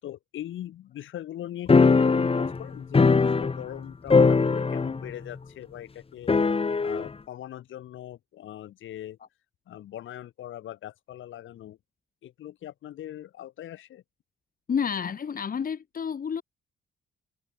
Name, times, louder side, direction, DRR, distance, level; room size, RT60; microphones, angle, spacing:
voice 1, 0.0-6.3 6.8-9.2 9.7-11.8 12.2-14.0, left 12 dB, 75° left, 7.3 m, -41 dB
sound 1, 1.7-3.8 4.1-5.1 5.4-5.5 6.3-7.1, left 4 dB, 30° left, 2.5 m, -21 dB
voice 2, 14.7-16.4, left 7 dB, 45° left, 3.0 m, -29 dB
cardioid pair, 90°, 20 cm